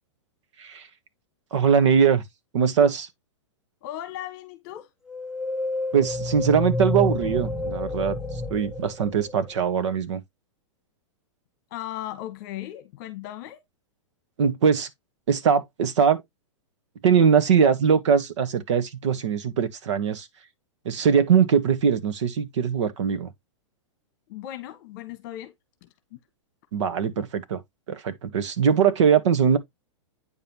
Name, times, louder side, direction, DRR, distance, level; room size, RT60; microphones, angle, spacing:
voice 1, 1.5-2.2 2.5-3.1 5.9-10.2 14.4-14.9 15.3-16.2 17.0-20.3 20.8-23.3 26.7-27.6 27.9-29.6, right 7 dB, 65° right, 1.6 m, -21 dB
voice 2, 3.8-4.9 11.7-13.6 24.3-25.5 25.8-25.9, left 13 dB, 40° left, 1.5 m, -37 dB
sound 1, 5.1-9.7, left 2 dB, 5° right, 0.9 m, -29 dB
9.0 x 5.4 x 3.0 m
supercardioid pair, 165°, 16 cm